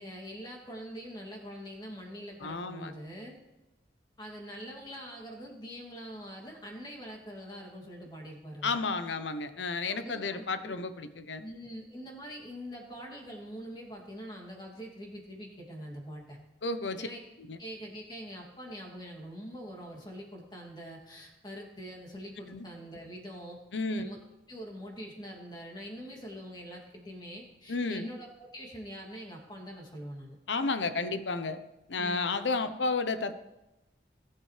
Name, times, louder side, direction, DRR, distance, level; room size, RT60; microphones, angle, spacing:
voice 1, 0.0-3.4 4.2-8.8 9.9-10.8 11.4-16.4 17.0-17.2 17.6-24.2 24.5-30.4 32.0-32.3, equal, 25° left, -1 dB, 2.6 m, -44 dB
voice 2, 2.4-2.9 8.6-11.4 16.6-17.1 17.5-17.6 22.5-22.7 23.7-24.1 27.7-28.1 30.5-31.6 31.9-33.4, left 3 dB, 90° left, 10 dB, 0.9 m, -32 dB
20.0 x 11.0 x 3.4 m, 0.99 s
head